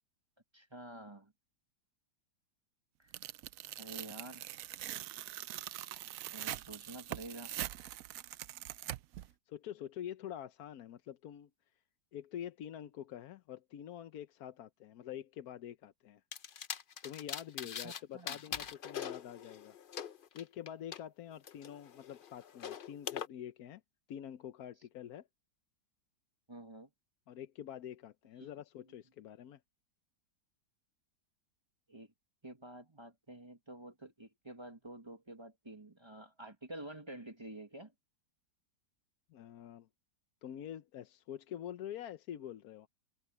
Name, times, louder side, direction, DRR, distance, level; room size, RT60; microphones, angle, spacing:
voice 1, 0.5-1.3 3.0-3.1 3.8-4.5 6.3-7.5 17.7-18.4 26.5-26.9 28.4-28.5 31.9-32.1 32.4-37.9, right 1 dB, 15° right, 1.5 m, -49 dB
Tearing, 3.1-9.3, right 13 dB, 75° right, 0.8 m, -43 dB
voice 2, 9.5-11.5 12.1-16.2 17.0-19.8 20.3-23.8 24.1-25.3 27.3-29.6 39.3-39.9 40.4-42.9, left 10 dB, 65° left, 1.1 m, -46 dB
sound 1, 16.3-18.0 18.3-21.0 21.4-23.3, left 8 dB, 90° left, 0.4 m, -42 dB
omnidirectional pair, 1.9 m